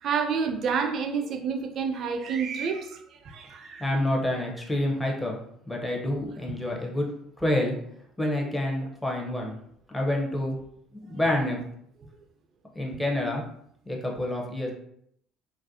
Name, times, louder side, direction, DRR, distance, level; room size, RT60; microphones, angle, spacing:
voice 1, 0.0-3.8, right 6 dB, 50° right, 4 dB, 0.4 m, -29 dB
voice 2, 3.8-5.4 5.7-7.1 7.4-7.8 8.2-9.5 9.9-10.6 11.1-11.6 12.7-13.4 13.9-14.7, left 1 dB, 10° left, -1 dB, 0.7 m, -27 dB
2.4 x 2.2 x 2.7 m, 0.71 s
figure-of-eight pair, 55°, 0 cm